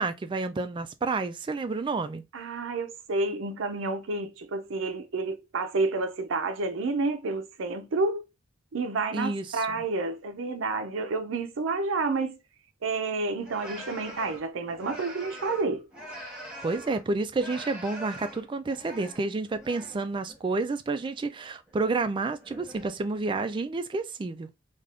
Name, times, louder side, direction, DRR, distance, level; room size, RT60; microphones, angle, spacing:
voice 1, 0.0-2.2 9.1-9.8 16.6-24.5, right 3 dB, 25° right, 0.3 m, -30 dB
voice 2, 2.3-8.2 8.7-12.4 12.8-15.9, right 3 dB, 90° right, 0.5 m, -30 dB
sound 1, 13.4-17.1 17.3-20.0 20.3-20.6 21.7-22.1 22.4-23.2, equal, 5° right, 0.9 m, -43 dB
2.6 x 2.3 x 3.3 m
head